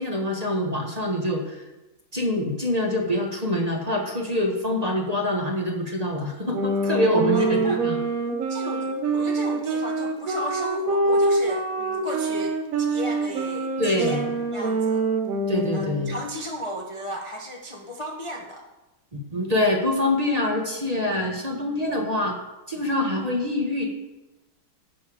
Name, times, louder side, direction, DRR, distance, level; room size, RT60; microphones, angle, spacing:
voice 1, 0.0-1.6 2.1-8.0 13.8-14.2 15.5-16.1 19.3-22.3 22.7-23.9, left 1 dB, 20° right, 0 dB, 1.3 m, -25 dB
sound 1, 6.5-16.2, right 2 dB, 55° right, 1.2 m, -25 dB
voice 2, 7.3-7.8 8.5-15.0 15.7-18.7, equal, 25° left, 0 dB, 0.6 m, -35 dB
12.0 x 7.0 x 5.1 m, 1.1 s
omnidirectional pair, 2.2 m